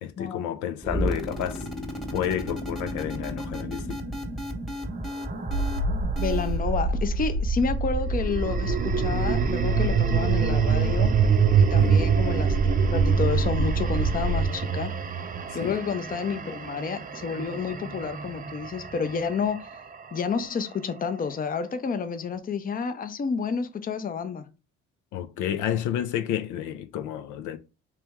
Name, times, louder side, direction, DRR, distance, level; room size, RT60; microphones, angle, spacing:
voice 1, 0.0-1.7 2.1-4.0 10.2-10.3 11.8-12.1 15.6-15.8 25.1-27.6, left 10 dB, 75° left, 0.5 m, -30 dB
sound 1, 0.8-6.6, equal, ahead, 1.1 m, -33 dB
sound 2, 4.0-6.5 8.1-20.4, right 7 dB, 30° right, 0.5 m, -26 dB
sound 3, 5.5-14.5, right 2 dB, 85° right, 0.9 m, -28 dB
voice 2, 6.2-11.1 11.5-14.9 15.5-19.7 20.1-24.5, left 5 dB, 30° left, 0.6 m, -30 dB
3.3 x 3.0 x 3.5 m
supercardioid pair, 75°, 30 cm